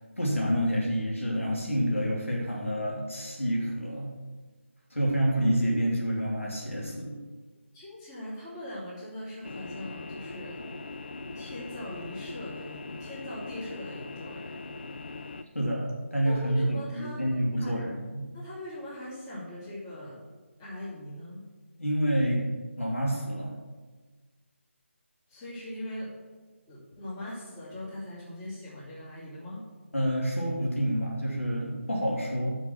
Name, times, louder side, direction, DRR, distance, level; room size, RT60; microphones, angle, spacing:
voice 1, 0.2-4.1 4.9-7.2 15.5-18.3 21.8-23.6 29.9-32.6, equal, 80° left, -3 dB, 2.9 m, -28 dB
voice 2, 7.7-10.6 11.3-14.5 16.2-17.2 17.6-17.8 18.3-20.2 20.6-21.4 25.3-26.1 26.7-29.6, left 1 dB, 15° left, -9 dB, 2.7 m, -40 dB
sound 1, 9.4-15.4, left 3 dB, 50° left, 0.5 m, -40 dB
7.2 x 6.2 x 7.4 m, 1.3 s
figure-of-eight pair, 160°, 7 cm